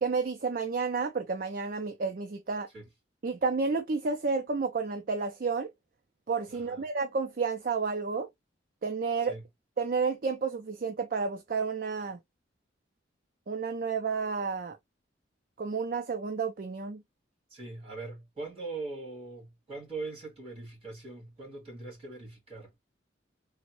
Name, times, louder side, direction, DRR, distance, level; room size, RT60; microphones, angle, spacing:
voice 1, 0.0-2.7 3.2-5.7 6.3-8.3 8.8-9.3 9.8-12.2 13.5-14.8 15.6-17.0, right 4 dB, 50° right, 0.4 m, -31 dB
voice 2, 6.5-6.8 9.2-9.4 17.5-22.8, right 3 dB, 30° right, 2.0 m, -41 dB
3.4 x 2.1 x 2.8 m
head